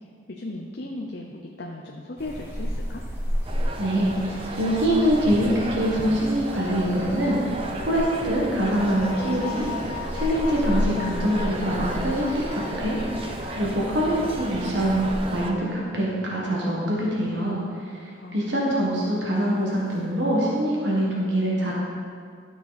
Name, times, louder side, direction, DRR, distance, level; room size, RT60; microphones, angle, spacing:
voice 1, 0.3-3.0 18.1-19.0, left 2 dB, 55° left, 1 dB, 0.7 m, -37 dB
sound 1, 2.2-15.4, equal, 15° right, 1.3 m, -33 dB
sound 2, 3.4-15.5, right 1 dB, 30° right, 0.7 m, -34 dB
voice 2, 3.8-15.1 15.3-21.7, equal, 65° right, -4 dB, 1.6 m, -24 dB
sound 3, 8.7-16.4 16.6-16.7 19.9-20.0, left 11 dB, 30° left, 2.5 m, -41 dB
12.5 x 6.2 x 4.1 m, 2.1 s
head